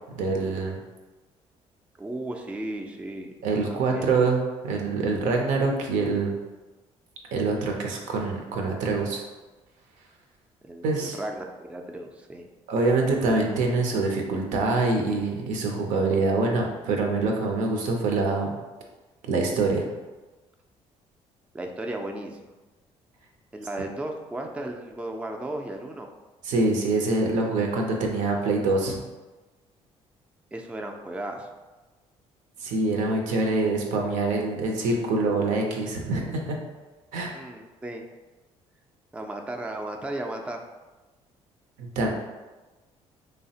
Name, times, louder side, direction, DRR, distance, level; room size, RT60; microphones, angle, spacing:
voice 1, 0.1-0.8 3.4-6.3 7.3-9.2 10.8-11.2 12.7-18.5 19.3-19.9 26.4-29.0 32.6-36.6 37.1-37.4 41.8-42.1, right 3 dB, 80° right, 1 dB, 0.5 m, -25 dB
voice 2, 2.0-3.3 3.7-4.0 10.6-12.5 21.5-22.5 23.5-26.1 30.5-31.5 37.3-38.1 39.1-40.6, right 1 dB, 10° right, 3 dB, 0.3 m, -35 dB
3.2 x 2.0 x 2.7 m, 1.2 s
supercardioid pair, 75°, 13 cm